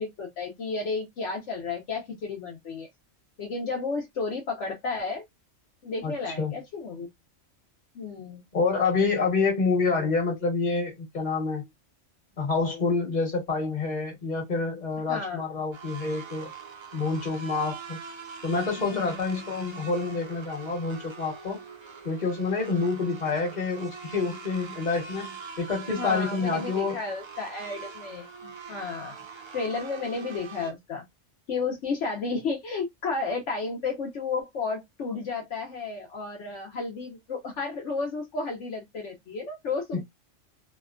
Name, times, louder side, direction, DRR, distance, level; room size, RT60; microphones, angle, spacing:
voice 1, 0.0-2.9 3.4-5.2 5.8-7.1 7.9-8.4 15.1-15.4 18.9-19.3 26.0-29.2 29.5-31.0 31.5-40.0, left 4 dB, 70° left, 1.1 m, -32 dB
voice 2, 8.5-11.6 12.4-16.5 16.9-18.0 18.4-21.6 22.0-27.0 39.9-40.0, left 4 dB, 35° left, 1.3 m, -27 dB
sound 1, 15.7-30.7, right 5 dB, 50° right, 0.3 m, -43 dB
2.8 x 2.2 x 2.4 m
omnidirectional pair, 1.3 m